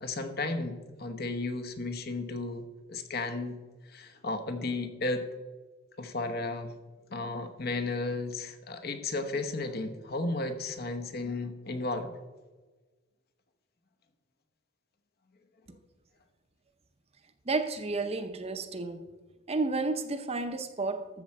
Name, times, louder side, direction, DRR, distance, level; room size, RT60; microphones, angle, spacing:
voice 1, 0.0-3.6 3.9-5.3 6.0-6.7 7.1-12.1, left 2 dB, 50° left, 1.0 m, -34 dB
voice 2, 17.5-19.1 19.5-21.2, right 3 dB, 30° right, 0.7 m, -31 dB
13.0 x 4.4 x 7.4 m
head